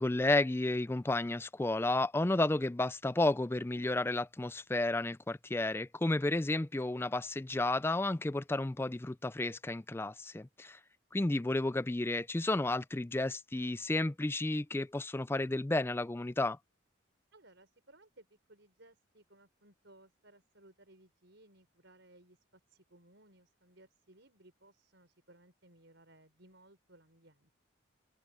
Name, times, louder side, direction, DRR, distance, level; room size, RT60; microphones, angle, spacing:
voice 1, 0.0-10.8 11.1-16.6, left 2 dB, 10° left, 0.3 m, -32 dB
voice 2, 17.3-27.5, right 1 dB, 60° right, 5.4 m, -62 dB
head